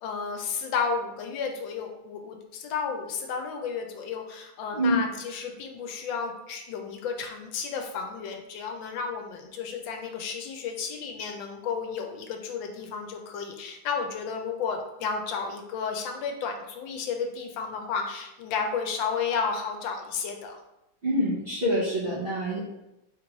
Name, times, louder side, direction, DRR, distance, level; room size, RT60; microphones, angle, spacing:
voice 1, 0.0-20.6, left 5 dB, 80° left, 3 dB, 1.3 m, -32 dB
voice 2, 21.0-22.6, equal, 45° right, -8 dB, 0.8 m, -26 dB
3.7 x 3.0 x 3.8 m, 0.92 s
omnidirectional pair, 2.1 m